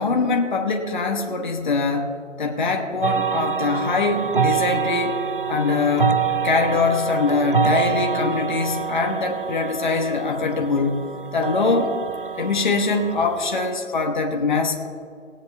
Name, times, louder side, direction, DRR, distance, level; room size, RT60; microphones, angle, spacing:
voice 1, 0.0-5.2 5.5-6.2 6.4-11.9 12.4-14.7, left 4 dB, 35° left, 2 dB, 1.1 m, -23 dB
sound 1, 3.0-13.7, right 6 dB, 45° right, 0.5 m, -26 dB
19.0 x 10.0 x 2.6 m, 2.4 s
figure-of-eight pair, 165°, 39 cm